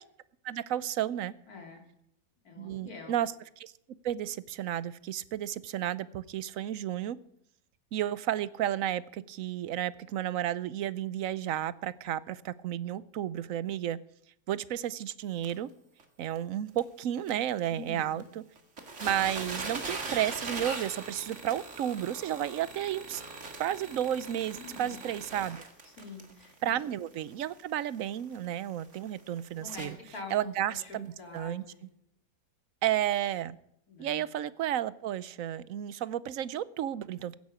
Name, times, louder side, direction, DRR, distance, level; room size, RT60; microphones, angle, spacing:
voice 1, 0.4-1.3 2.6-3.7 4.0-7.2 7.9-14.0 14.5-15.7 16.2-18.4 19.0-23.2 23.6-25.6 26.6-30.0 30.3-31.6 32.8-33.6 34.0-37.3, right 11 dB, 65° right, 18 dB, 1.0 m, -32 dB
voice 2, 1.5-1.8 2.4-3.1 17.7-18.4 24.6-25.0 25.8-26.7 29.6-30.5 30.8-31.8 33.9-34.3, left 3 dB, 70° left, 1 dB, 3.4 m, -46 dB
sound 1, 15.4-15.5 16.0-16.1 16.4-16.5 16.8-16.9 17.3-17.4 18.2-18.3 18.6-30.1 30.8-30.9 31.4-31.5, right 3 dB, 50° right, 2.3 m, -41 dB
15.5 x 10.5 x 5.0 m, 0.73 s
omnidirectional pair, 1.6 m